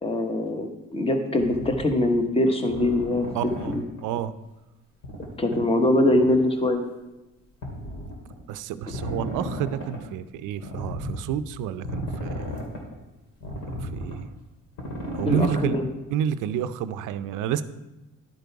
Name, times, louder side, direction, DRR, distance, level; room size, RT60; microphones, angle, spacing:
voice 1, 0.0-3.3 3.7-3.8 5.4-6.8 15.2-15.8, left 1 dB, 20° left, 5 dB, 1.1 m, -23 dB
sound 1, 1.4-1.9 2.7-4.0 5.0-5.3 5.5-5.6 6.0-6.4 7.6-8.3 8.9-10.0 10.6-11.2 11.8-12.9 13.4-14.3 14.7-15.8, equal, 75° left, 2.4 m, -34 dB
voice 2, 3.3-3.7 4.0-4.3 8.5-12.6 13.8-14.3 15.1-15.8 16.1-17.6, right 9 dB, 90° right, 12 dB, 0.5 m, -29 dB
11.0 x 5.3 x 4.7 m, 1.0 s
cardioid pair, 90°, 30 cm